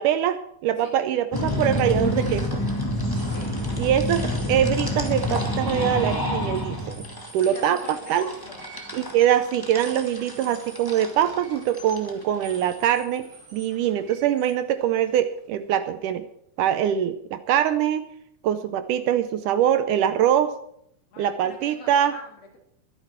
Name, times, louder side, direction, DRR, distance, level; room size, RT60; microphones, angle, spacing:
voice 1, 0.0-2.6 3.8-7.1 7.3-8.3 8.9-13.3 13.5-16.2 16.6-18.0 18.4-20.5 21.2-22.1, right 10 dB, 75° right, 11 dB, 2.0 m, -23 dB
sound 1, 1.3-12.9, left 1 dB, 10° left, 1.0 m, -28 dB
sound 2, 3.0-15.7, right 2 dB, 40° right, 5.5 m, -48 dB
voice 2, 3.3-3.6 7.5-8.6 21.1-22.6, left 3 dB, 80° left, 0 dB, 5.1 m, -43 dB
22.0 x 9.5 x 4.5 m, 0.70 s
omnidirectional pair, 4.1 m